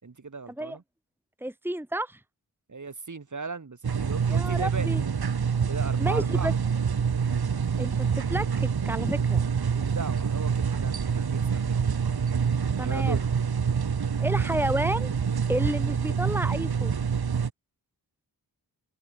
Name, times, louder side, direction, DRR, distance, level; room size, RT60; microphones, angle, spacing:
voice 1, 0.0-0.8 2.7-5.0 5.7-6.5 9.1-9.2 9.6-11.8 12.8-13.2, right 4 dB, 50° right, 5.7 m, -37 dB
voice 2, 1.4-2.2 4.3-5.0 6.0-6.5 7.8-9.4 12.8-13.2 14.2-15.1 15.5-16.9, right 1 dB, 5° right, 2.0 m, -31 dB
sound 1, 3.8-17.5, right 6 dB, 70° right, 3.2 m, -26 dB
open air
cardioid pair, 70°, 39 cm